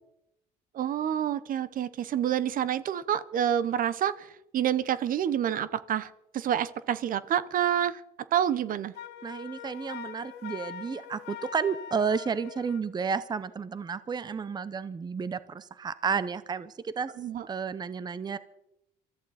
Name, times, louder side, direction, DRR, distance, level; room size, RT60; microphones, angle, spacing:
voice 1, 0.7-4.3 4.5-8.0 8.3-8.9 17.2-17.4, right 10 dB, 55° right, 16 dB, 0.8 m, -28 dB
Wind instrument woodwind instrument, 9.0-12.9, left 9 dB, 80° left, 1.5 m, -43 dB
voice 2, 9.2-17.1 17.5-18.4, right 6 dB, 25° right, 15 dB, 0.7 m, -32 dB
24.5 x 14.0 x 4.2 m, 0.85 s
cardioid pair, 110°, 17 cm